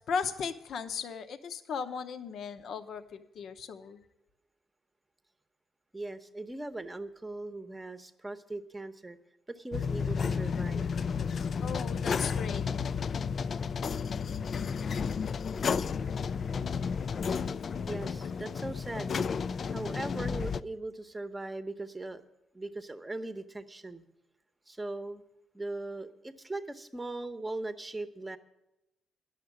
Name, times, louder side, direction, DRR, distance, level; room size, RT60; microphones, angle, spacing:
voice 1, 0.1-4.0 11.6-12.6, left 6 dB, 65° left, 9 dB, 0.7 m, -36 dB
voice 2, 5.9-9.2 9.5-10.9 17.9-19.1 19.7-22.2 22.5-24.0 24.7-25.2 25.5-28.4, right 2 dB, 15° right, 9 dB, 0.9 m, -39 dB
sound 1, 9.7-20.6, left 6 dB, 50° left, 0.3 m, -32 dB
11.0 x 6.6 x 9.3 m, 0.91 s
cardioid pair, 90°, 0 cm